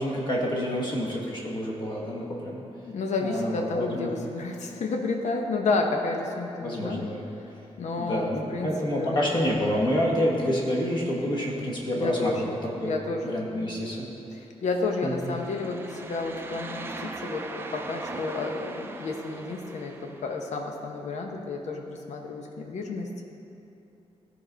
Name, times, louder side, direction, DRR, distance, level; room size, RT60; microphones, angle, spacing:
voice 1, 0.0-2.6 3.2-4.1 6.6-7.2 8.0-12.9 13.2-14.1 15.0-15.3, equal, 40° left, -3 dB, 1.5 m, -28 dB
voice 2, 2.9-7.1 7.8-9.2 11.9-12.6 12.8-13.7 14.3-23.2, left 3 dB, 85° left, 2 dB, 0.9 m, -31 dB
sound 1, 14.9-20.4, right 3 dB, 20° right, 0.4 m, -40 dB
14.0 x 4.8 x 4.0 m, 2.9 s
wide cardioid pair, 165°, 12 cm